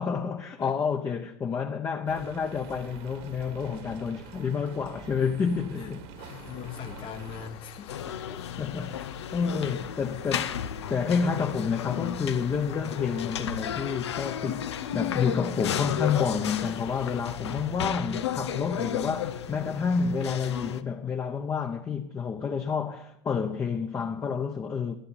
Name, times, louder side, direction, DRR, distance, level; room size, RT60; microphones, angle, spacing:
voice 1, 0.0-6.0 8.1-10.6 10.9-25.0, left 6 dB, 20° left, 0.9 m, -29 dB
sound 1, 2.1-7.5, right 5 dB, 65° right, 2.2 m, -45 dB
voice 2, 5.7-8.2, left 8 dB, 40° left, 1.1 m, -41 dB
sound 2, 6.2-17.2, left 9 dB, 65° left, 2.5 m, -46 dB
sound 3, 7.9-20.8, left 9 dB, 90° left, 0.8 m, -34 dB
11.5 x 8.7 x 8.1 m
hypercardioid pair, 105°, 14 cm